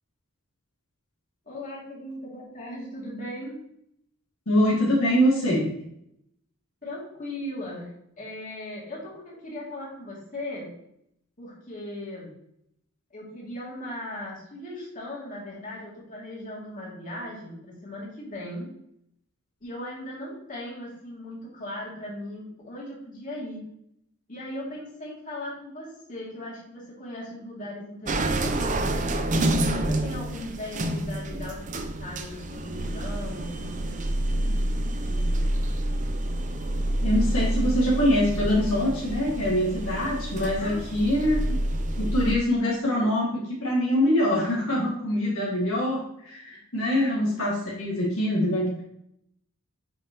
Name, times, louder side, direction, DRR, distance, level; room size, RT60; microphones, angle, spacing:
voice 1, 1.5-3.6 6.8-7.9 8.2-10.7 11.4-12.3 13.1-18.7 19.6-23.6 24.3-29.1 29.7-34.6 35.0-35.4 40.6-41.3 46.9-47.1, left 1 dB, 35° left, -5 dB, 2.6 m, -38 dB
voice 2, 4.5-5.7 37.0-41.4 42.0-48.8, equal, 70° left, -5 dB, 2.0 m, -24 dB
sound 1, 28.1-42.4, right 1 dB, 35° right, 0.6 m, -28 dB
7.5 x 5.5 x 2.9 m, 0.75 s
head